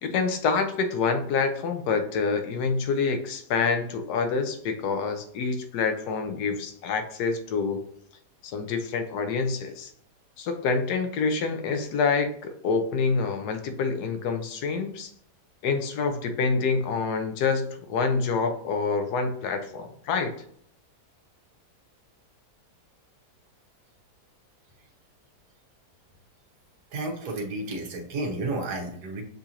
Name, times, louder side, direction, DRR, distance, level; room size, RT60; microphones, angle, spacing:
voice 1, 0.0-7.8 8.4-9.9 10.4-15.1 15.6-20.3, left 4 dB, 75° left, 7 dB, 1.2 m, -27 dB
voice 2, 26.9-29.2, right 2 dB, 75° right, 1 dB, 1.4 m, -31 dB
6.6 x 2.4 x 2.8 m, 0.67 s
omnidirectional pair, 1.7 m